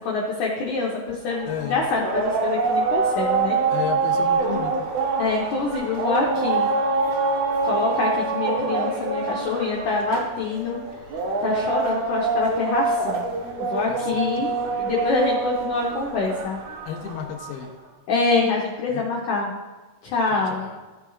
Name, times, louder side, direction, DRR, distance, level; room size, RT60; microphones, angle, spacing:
voice 1, 0.0-3.6 5.2-6.7 7.6-10.8 11.4-13.3 13.6-14.5 14.8-16.6 18.1-19.5 20.0-20.7, left 3 dB, 70° left, -2 dB, 2.1 m, -25 dB
sound 1, 1.3-17.7, right 4 dB, 65° right, 2.2 m, -25 dB
voice 2, 1.5-1.8 3.7-4.9 13.9-14.8 16.9-17.7 18.9-19.1 20.3-20.8, left 8 dB, 90° left, 5 dB, 2.6 m, -34 dB
15.0 x 7.9 x 2.4 m, 1.2 s
omnidirectional pair, 4.5 m